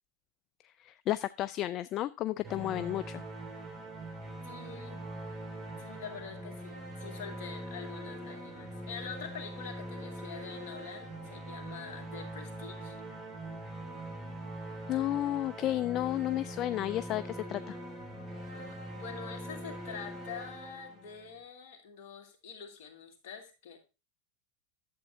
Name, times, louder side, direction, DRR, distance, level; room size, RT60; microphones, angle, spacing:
voice 1, 0.8-3.2 14.9-17.8, left 14 dB, 45° left, 15 dB, 0.3 m, -32 dB
sound 1, 2.4-21.3, right 1 dB, 35° right, 4.5 m, -43 dB
voice 2, 4.4-5.1 5.8-13.0 18.5-23.8, left 6 dB, 65° left, 4 dB, 2.1 m, -46 dB
11.5 x 7.9 x 2.7 m, 0.29 s
hypercardioid pair, 95°, 0 cm